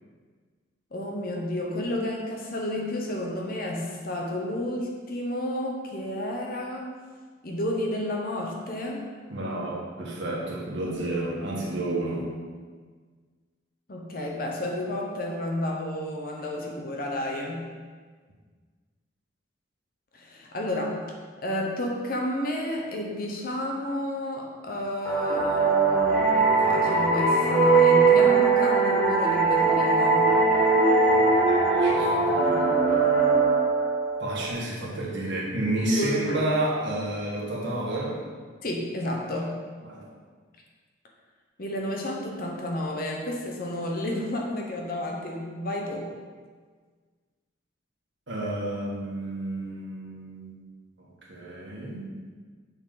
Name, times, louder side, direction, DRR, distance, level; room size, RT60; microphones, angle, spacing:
voice 1, 0.9-7.0 7.4-9.1 13.9-17.7 20.1-21.0 21.4-30.4 35.9-36.4 38.6-39.6 41.6-46.1, left 1 dB, 50° left, 0 dB, 0.9 m, -31 dB
voice 2, 9.3-12.3 31.5-32.8 34.2-38.2 39.8-40.0 48.3-50.6 51.0-52.1, right 1 dB, 65° right, -5 dB, 1.8 m, -30 dB
sound 1, 25.1-34.5, right 3 dB, 5° left, 1.5 m, -21 dB
7.0 x 6.2 x 4.0 m, 1.5 s
head